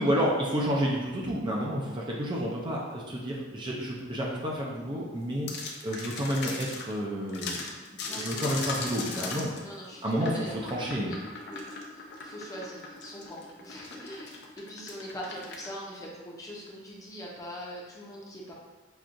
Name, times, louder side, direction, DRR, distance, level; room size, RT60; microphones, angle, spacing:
voice 1, 0.0-5.5 5.8-9.5 10.0-11.1, equal, 25° right, -3 dB, 0.5 m, -30 dB
sound 1, 5.5-6.9 7.3-15.7, left 3 dB, 60° left, 0.6 m, -38 dB
voice 2, 8.0-8.8 9.1-9.3 9.6-10.7 11.0-11.2 11.5-11.6 11.9-18.5, equal, 15° left, -4 dB, 0.7 m, -42 dB
5.9 x 2.4 x 2.5 m, 1.2 s
head